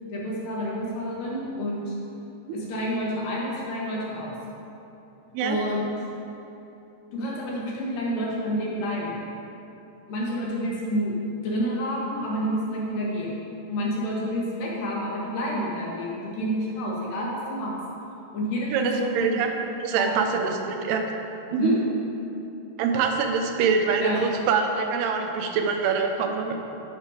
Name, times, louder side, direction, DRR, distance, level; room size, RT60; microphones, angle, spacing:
voice 1, 0.1-2.0 2.5-4.3 5.4-5.9 7.1-9.2 10.1-11.2 11.4-13.3 13.7-17.7 18.3-19.4 20.0-20.1 21.6-21.8 24.0-24.2, equal, 65° left, -4 dB, 2.7 m, -29 dB
voice 2, 18.7-19.5 19.8-21.0 21.5-21.7 22.8-26.6, right 5 dB, 90° right, 4 dB, 2.8 m, -24 dB
9.2 x 5.8 x 4.9 m, 3.0 s
omnidirectional pair, 4.5 m